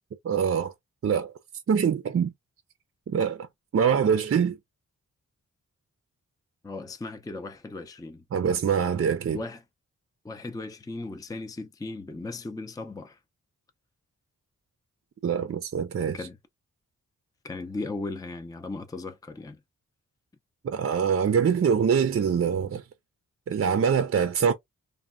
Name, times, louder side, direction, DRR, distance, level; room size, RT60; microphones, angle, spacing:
voice 1, 0.2-0.7 1.0-1.3 1.7-2.3 3.1-3.5 3.7-4.6 8.3-9.4 15.2-16.2 20.6-22.8 23.5-24.5, right 7 dB, 45° right, 0.5 m, -24 dB
voice 2, 6.6-8.2 9.3-9.6 10.2-13.2 16.1-16.4 17.4-19.6, left 2 dB, 10° left, 0.5 m, -37 dB
3.3 x 2.2 x 2.4 m
wide cardioid pair, 90°, 31 cm